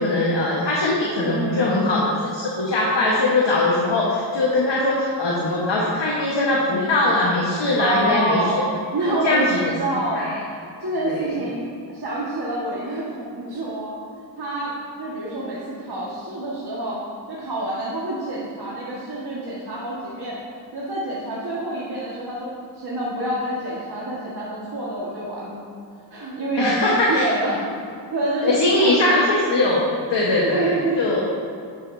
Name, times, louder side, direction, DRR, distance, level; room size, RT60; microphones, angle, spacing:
voice 1, 0.0-2.0 2.3-8.4 9.0-9.7 10.1-10.3 11.1-11.3 26.6-27.3 28.4-31.2, left 2 dB, 70° left, -4 dB, 1.4 m, -21 dB
voice 2, 1.2-2.0 7.8-8.6 8.9-11.6 11.9-13.9 14.4-17.0 17.3-20.4 20.7-22.5 22.7-25.6 26.1-27.8 28.1-29.2 30.2-31.0, right 1 dB, 55° right, -7 dB, 1.7 m, -27 dB
10.5 x 7.8 x 2.7 m, 2.5 s
cardioid pair, 45°, 44 cm